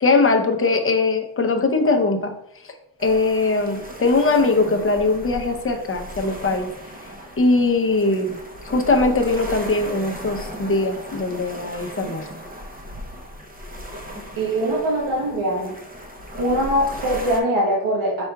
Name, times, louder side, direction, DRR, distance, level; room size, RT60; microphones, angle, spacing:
voice 1, 0.0-2.3 3.0-6.7 7.4-8.4 8.6-12.3, left 3 dB, 25° left, 4 dB, 0.7 m, -20 dB
sound 1, 3.0-17.4, equal, 20° right, 0.7 m, -37 dB
voice 2, 14.4-15.7 16.4-18.2, right 1 dB, 70° right, -3 dB, 1.2 m, -22 dB
4.8 x 4.2 x 2.3 m, 0.78 s
cardioid pair, 75°, 48 cm